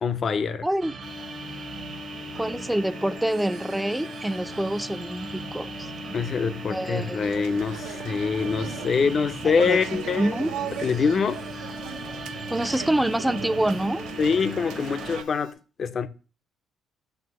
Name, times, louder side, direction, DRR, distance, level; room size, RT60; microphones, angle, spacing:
voice 1, 0.0-0.7 6.1-10.3 10.8-11.4 14.2-15.5 15.8-16.1, left 5 dB, 50° left, 0.6 m, -25 dB
voice 2, 0.6-1.0 2.4-5.9 6.7-7.3 9.4-9.8 10.2-10.5 12.5-14.1, right 1 dB, 10° right, 0.4 m, -26 dB
sound 1, 0.8-15.2, right 4 dB, 55° right, 0.8 m, -39 dB
sound 2, 1.0-15.5, left 7 dB, 80° left, 0.9 m, -41 dB
sound 3, 7.2-15.2, right 8 dB, 85° right, 0.5 m, -38 dB
6.1 x 4.4 x 4.1 m
supercardioid pair, 60°, 0 cm